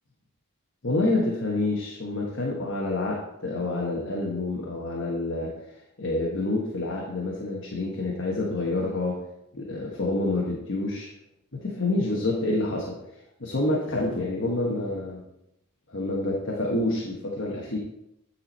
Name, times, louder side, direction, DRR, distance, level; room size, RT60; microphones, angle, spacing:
voice 1, 0.8-5.5 6.0-9.2 9.5-11.1 11.5-15.2 15.9-17.8, left 2 dB, 55° left, -2 dB, 1.2 m, -28 dB
10.0 x 4.4 x 4.3 m, 0.83 s
head